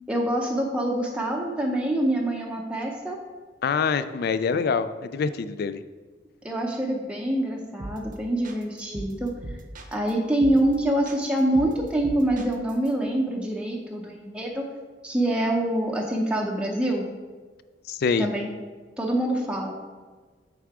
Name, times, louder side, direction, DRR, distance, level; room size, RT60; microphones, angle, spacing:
voice 1, 0.1-3.2 6.4-9.3 9.9-14.6 15.0-17.1 18.2-18.5 19.0-19.7, right 1 dB, 5° right, -1 dB, 0.6 m, -25 dB
voice 2, 3.6-5.8 17.9-18.3, left 5 dB, 60° left, 12 dB, 0.3 m, -25 dB
sound 1, 7.8-8.1 8.4-10.1 10.4-10.8 11.1-12.9, right 1 dB, 50° right, 0.7 m, -38 dB
8.3 x 3.7 x 4.7 m, 1.4 s
head